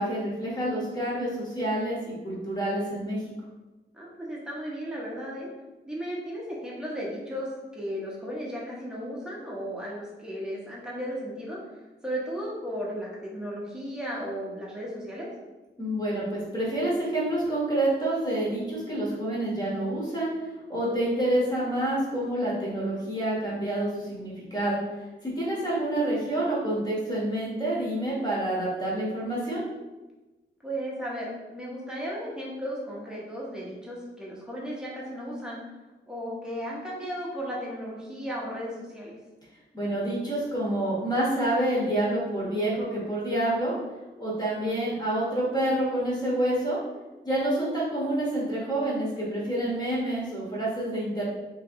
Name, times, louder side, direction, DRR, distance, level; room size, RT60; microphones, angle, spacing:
voice 1, 0.0-3.2 15.8-20.3 20.7-24.8 25.2-29.6 39.7-43.7 44.2-46.8 47.2-51.2, right 1 dB, 20° left, -6 dB, 1.2 m, -28 dB
voice 2, 3.9-5.5 5.9-11.6 12.0-15.3 30.6-35.6 36.1-39.1, equal, 5° right, -6 dB, 0.9 m, -35 dB
3.0 x 2.8 x 3.6 m, 1.1 s
wide cardioid pair, 145°, 19 cm